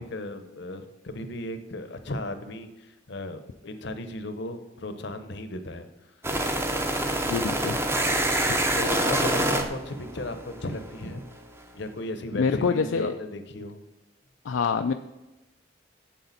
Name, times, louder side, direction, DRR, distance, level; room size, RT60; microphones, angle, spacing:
voice 1, 0.0-5.9 8.7-11.2 11.7-13.8, left 1 dB, 60° left, 9 dB, 0.8 m, -35 dB
sound 1, 6.2-11.1, right 1 dB, 10° right, 0.6 m, -26 dB
voice 2, 7.3-7.8 8.5-8.6 12.3-13.2 14.4-14.9, left 5 dB, 75° left, 6 dB, 0.4 m, -25 dB
8.5 x 7.6 x 4.1 m, 1.0 s
head